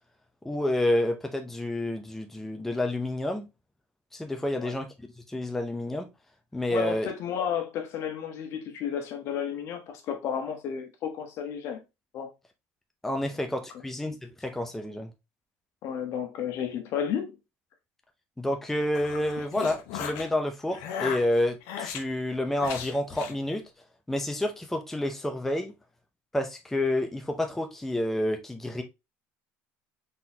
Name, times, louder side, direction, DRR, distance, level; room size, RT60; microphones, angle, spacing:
voice 1, 0.4-3.4 4.1-4.9 5.3-6.1 6.5-7.1 13.0-15.1 18.4-23.6 24.1-25.7 26.3-28.8, left 1 dB, 5° left, 0.6 m, -29 dB
voice 2, 6.7-11.8 12.1-12.3 15.8-17.3, left 8 dB, 55° left, 1.2 m, -32 dB
sound 1, 18.7-20.3 20.7-22.0 22.6-23.4, left 8 dB, 80° left, 0.9 m, -36 dB
4.0 x 3.8 x 2.8 m
cardioid pair, 125°, 6 cm